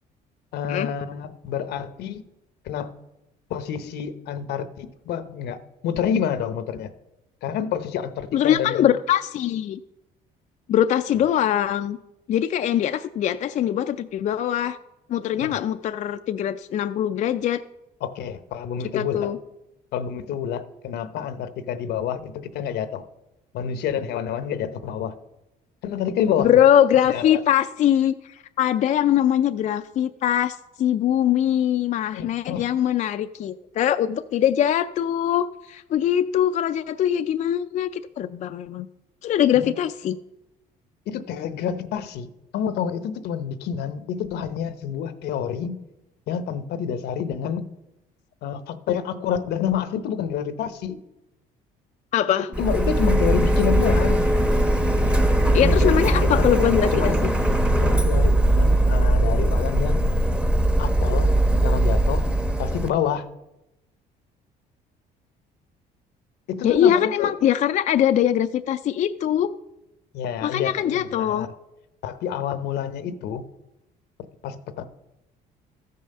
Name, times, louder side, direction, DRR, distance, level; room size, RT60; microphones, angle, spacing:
voice 1, 0.5-2.2 2.6-2.9 3.5-5.6 5.8-6.9 7.4-8.9 15.4-15.6 18.0-19.3 19.9-23.1 23.5-25.1 25.8-26.5 27.1-27.4 32.1-32.7 39.5-39.7 41.1-45.8 46.3-47.7 48.4-50.9 52.6-54.3 55.6-56.5 56.9-57.2 57.8-60.1 60.8-61.3 61.6-62.3 62.6-63.3 66.5-67.3 70.1-71.5 72.0-73.5 74.4-74.8, left 8 dB, 75° left, 12 dB, 0.8 m, -28 dB
voice 2, 8.3-9.8 10.7-12.0 12.3-14.8 15.1-17.6 18.9-19.4 26.4-38.9 39.2-40.2 52.1-52.5 55.5-57.3 66.6-69.5 70.4-71.5, left 10 dB, 45° left, 8 dB, 0.4 m, -22 dB
Printer, 52.5-62.9, right 1 dB, 5° right, 0.8 m, -20 dB
13.5 x 5.5 x 6.5 m, 0.94 s
cardioid pair, 110°, 17 cm